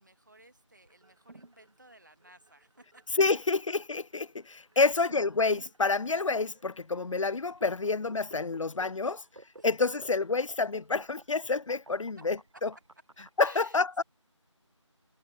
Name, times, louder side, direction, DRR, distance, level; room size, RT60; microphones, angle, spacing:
voice 1, 0.0-3.1 4.7-5.1 9.6-9.7 13.4-13.9, right 1 dB, 35° right, 2.1 m, -56 dB
sound 1, 0.8-13.3, right 2 dB, 70° right, 0.9 m, -53 dB
voice 2, 3.2-9.2 9.6-12.7 13.4-14.0, left 4 dB, 75° left, 0.4 m, -28 dB
figure-of-eight pair, 170°, 16 cm